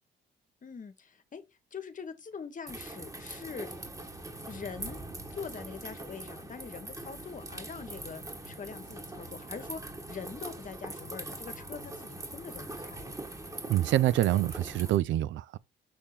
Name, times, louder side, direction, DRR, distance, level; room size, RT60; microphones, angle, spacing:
voice 1, 0.6-1.4 1.7-3.7 4.5-5.0 5.3-9.8 10.1-13.2, left 6 dB, 40° left, 1.3 m, -43 dB
sound 1, 2.7-15.0, right 2 dB, 15° right, 1.5 m, -42 dB
voice 2, 13.7-15.6, right 13 dB, 70° right, 0.4 m, -26 dB
6.7 x 3.7 x 4.3 m
cardioid pair, 90°, 20 cm